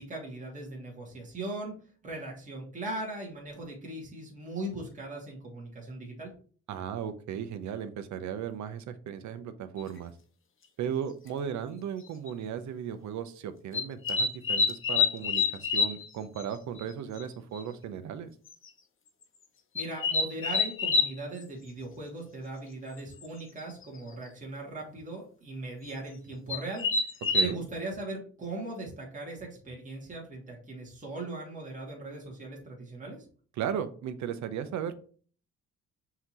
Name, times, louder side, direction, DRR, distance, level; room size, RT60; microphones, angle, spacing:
voice 1, 0.0-1.7 2.0-6.3 19.7-26.9 27.4-33.2, right 2 dB, 25° right, -2 dB, 1.6 m, -39 dB
voice 2, 6.7-10.1 10.8-18.3 27.3-27.6 33.6-34.9, right 8 dB, 70° right, 11 dB, 0.6 m, -36 dB
sound 1, 9.8-9.9 11.3-11.4 12.1-12.3 13.7-16.1 16.4-16.5 16.8-16.9 17.2-17.3 17.5-17.6 18.5-18.7 19.7-21.1 23.2-23.3 23.6-24.0 25.8-25.9 26.5-27.5, left 4 dB, 45° left, 0.8 m, -27 dB
5.7 x 2.8 x 2.9 m, 0.43 s
cardioid pair, 90°, 30 cm